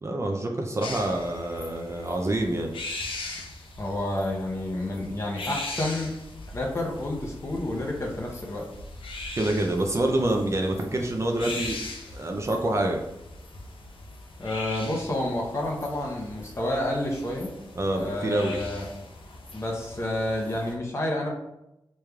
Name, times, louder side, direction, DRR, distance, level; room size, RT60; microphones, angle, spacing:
voice 1, 0.0-2.7 9.4-11.8 12.1-13.0 17.8-18.6, right 1 dB, 35° right, 2 dB, 0.4 m, -26 dB
sound 1, 0.8-20.7, left 2 dB, 80° left, 0.6 m, -40 dB
voice 2, 3.8-6.1 6.5-8.7 14.4-17.5 17.9-18.9 19.5-21.3, left 1 dB, 30° left, -2 dB, 0.7 m, -29 dB
5.0 x 3.1 x 2.3 m, 0.89 s
wide cardioid pair, 125°, 9 cm